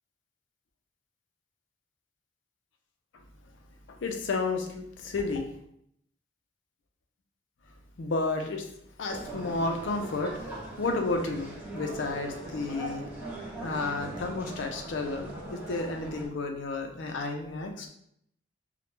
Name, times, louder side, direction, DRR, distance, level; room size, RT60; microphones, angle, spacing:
voice 1, 3.9-5.5 8.0-8.7 9.0-10.5 10.8-13.1 13.6-17.9, left 3 dB, 65° left, 4 dB, 0.4 m, -32 dB
sound 1, 9.1-16.3, right 2 dB, 10° right, 0.4 m, -40 dB
2.1 x 2.1 x 3.0 m, 0.71 s
head